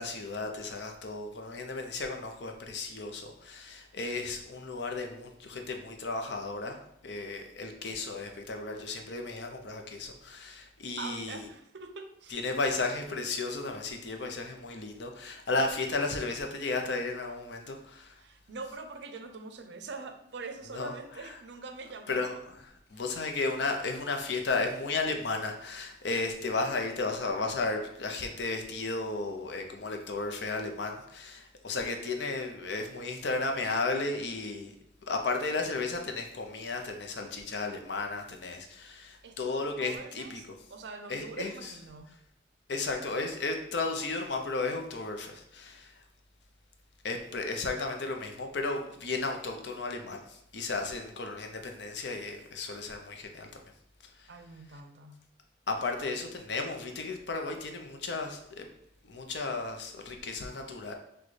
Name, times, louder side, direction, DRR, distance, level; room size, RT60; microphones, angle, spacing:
voice 1, 0.0-11.4 12.3-18.2 20.7-20.9 22.1-22.4 22.9-34.7 35.1-40.4 41.1-41.7 42.7-46.0 47.0-53.5 54.2-54.3 55.7-58.7 59.0-60.9, left 3 dB, 65° left, 4 dB, 0.6 m, -34 dB
voice 2, 11.0-12.4 18.2-22.3 22.9-23.0 39.2-42.1 54.3-55.2, right 4 dB, 65° right, 7 dB, 0.5 m, -44 dB
6.1 x 2.3 x 3.2 m, 0.75 s
head